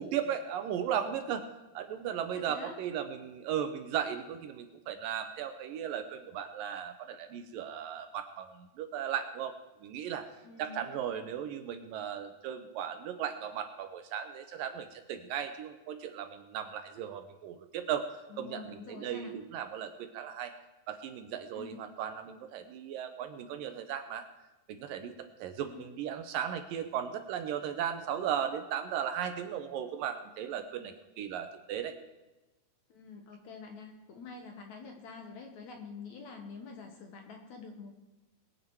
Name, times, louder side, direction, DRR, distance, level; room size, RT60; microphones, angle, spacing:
voice 1, 0.0-1.5 1.7-9.5 9.8-10.3 10.6-20.5 20.9-24.2 24.7-25.1 25.4-31.9, right 9 dB, 75° right, 8 dB, 2.3 m, -36 dB
voice 2, 2.3-2.8 10.4-10.9 18.3-19.3 21.6-21.9 25.6-25.9 32.9-37.9, left 4 dB, 60° left, 4 dB, 2.1 m, -47 dB
22.0 x 9.1 x 4.7 m, 1.1 s
omnidirectional pair, 4.5 m